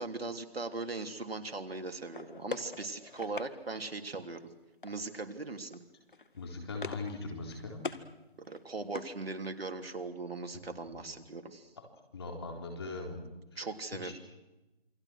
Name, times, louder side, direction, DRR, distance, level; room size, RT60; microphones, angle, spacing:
voice 1, 0.0-4.4 4.8-5.8 8.5-11.7 13.5-14.1, right 3 dB, 75° right, 6 dB, 3.3 m, -39 dB
Plastic tub open & close, 2.1-3.5 4.8-5.2 5.5-5.8 6.1-7.2 7.4-8.1 8.4-9.7, left 4 dB, 55° left, 1.9 m, -43 dB
voice 2, 6.4-7.8 10.5-10.6 10.9-11.0 12.1-13.2 14.0-14.1, left 3 dB, 25° left, 2 dB, 4.1 m, -40 dB
29.0 x 23.0 x 6.4 m, 1.0 s
figure-of-eight pair, 175°, 30 cm